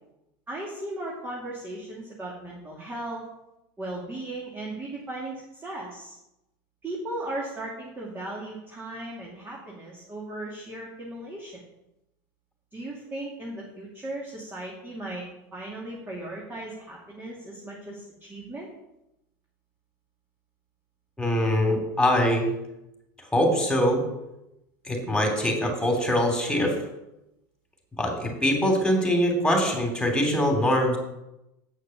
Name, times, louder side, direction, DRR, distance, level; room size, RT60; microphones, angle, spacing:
voice 1, 0.5-3.2 3.8-6.1 6.8-11.6 12.7-15.2 15.5-18.7, right 1 dB, 20° right, -4 dB, 2.6 m, -37 dB
voice 2, 21.2-22.5 23.3-24.0 24.9-26.7 28.0-31.0, equal, 5° left, 2 dB, 3.3 m, -23 dB
8.6 x 6.4 x 7.3 m, 0.89 s
supercardioid pair, 120°, 10 cm